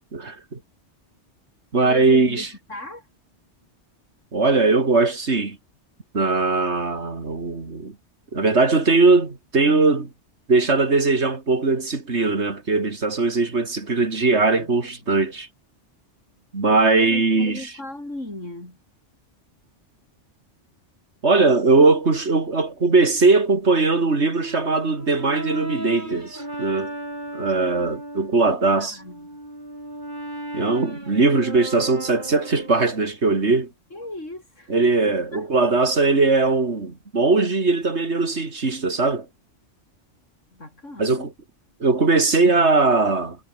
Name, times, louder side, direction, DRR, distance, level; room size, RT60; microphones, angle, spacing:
voice 1, 0.1-0.6 1.7-2.5 4.3-5.6 6.1-8.0 8.3-10.1 10.5-15.5 16.5-17.7 21.2-26.9 27.3-28.9 30.5-33.7 34.7-39.3 41.0-41.3 41.8-43.4, right 3 dB, 65° right, 3.1 m, -20 dB
voice 2, 1.7-3.1 14.5-15.3 16.9-18.8 27.8-28.0 28.3-29.4 33.9-34.8 35.3-35.5 40.5-41.3, left 1 dB, 85° left, 7.4 m, -37 dB
Brass instrument, 24.4-28.4 28.9-33.0, right 1 dB, 40° right, 7.8 m, -35 dB
omnidirectional pair, 1.2 m